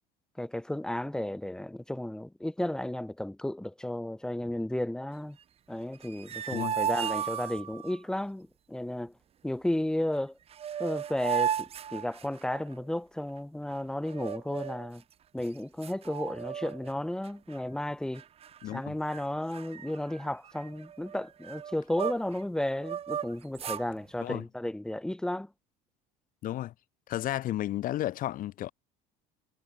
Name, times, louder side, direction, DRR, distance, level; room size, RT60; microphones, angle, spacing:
voice 1, 0.4-5.4 5.7-9.1 9.4-10.3 10.8-11.5 11.9-15.0 15.3-18.2 18.7-25.5, left 1 dB, 5° left, 3.8 m, -33 dB
sound 1, 5.9-8.0 10.1-10.2 10.5-12.7 14.1-14.9 15.4-15.5 15.8-16.9 17.2-17.6 18.1-18.8 19.1-19.2 19.5-22.4 22.8-23.9, right 9 dB, 35° right, 1.8 m, -35 dB
voice 2, 18.6-19.0 24.2-24.4 26.4-26.7 27.1-28.7, left 13 dB, 50° left, 7.5 m, -33 dB
cardioid pair, 145°, 18 cm